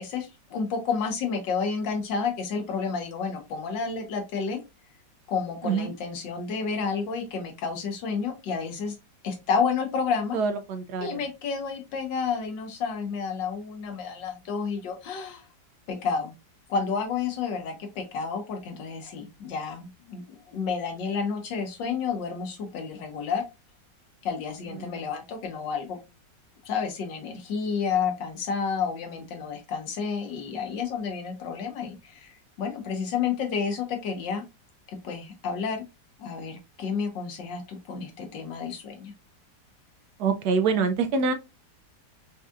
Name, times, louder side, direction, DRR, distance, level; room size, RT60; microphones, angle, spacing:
voice 1, 0.0-4.6 5.3-8.9 9.2-10.4 11.0-15.4 15.9-16.3 16.7-23.4 24.2-26.0 26.6-34.4 35.0-35.8 36.2-39.1, left 5 dB, 85° left, 1.7 m, -30 dB
voice 2, 10.3-11.2 24.9-25.0 40.2-41.3, right 5 dB, 70° right, 1.0 m, -25 dB
4.8 x 2.7 x 2.4 m
omnidirectional pair, 1.9 m